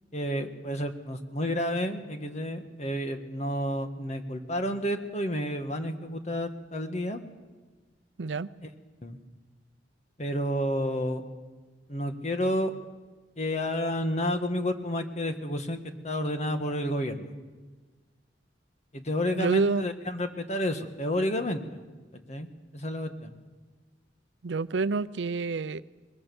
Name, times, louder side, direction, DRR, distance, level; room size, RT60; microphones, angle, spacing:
voice 1, 0.1-7.2 9.0-9.2 10.2-11.2 11.9-12.7 13.4-17.3 18.9-21.8 22.1-22.5 22.7-23.3, equal, 40° left, 7 dB, 1.7 m, -30 dB
voice 2, 8.2-8.5 19.3-19.8 24.4-25.8, right 3 dB, 85° right, 16 dB, 0.6 m, -28 dB
21.5 x 21.5 x 7.1 m, 1.3 s
head